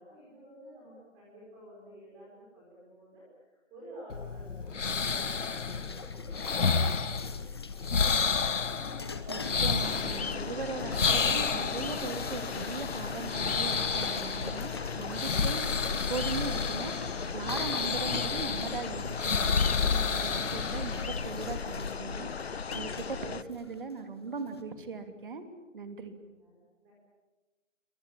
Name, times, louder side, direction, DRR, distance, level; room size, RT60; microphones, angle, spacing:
voice 1, 0.0-8.1 26.4-26.9, equal, 10° right, -5 dB, 4.7 m, -51 dB
sound 1, 4.1-21.6, left 5 dB, 70° left, 1.8 m, -31 dB
sound 2, 5.0-24.6, left 4 dB, 20° left, 1.1 m, -46 dB
voice 2, 9.3-25.4 25.7-26.1, right 4 dB, 40° right, 8 dB, 2.9 m, -39 dB
sound 3, 9.8-23.4, left 5 dB, 55° left, 1.1 m, -38 dB
28.5 x 24.0 x 8.7 m, 1.2 s
hypercardioid pair, 180°, 38 cm